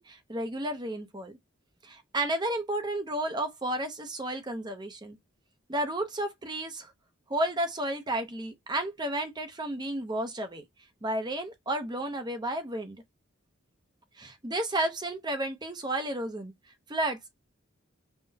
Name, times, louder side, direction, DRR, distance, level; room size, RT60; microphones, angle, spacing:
voice 1, 0.0-1.3 1.8-5.2 5.7-6.9 7.3-10.6 11.0-13.0 14.2-16.5 16.9-17.3, right 1 dB, 20° right, 0.6 m, -32 dB
5.6 x 2.1 x 2.7 m
head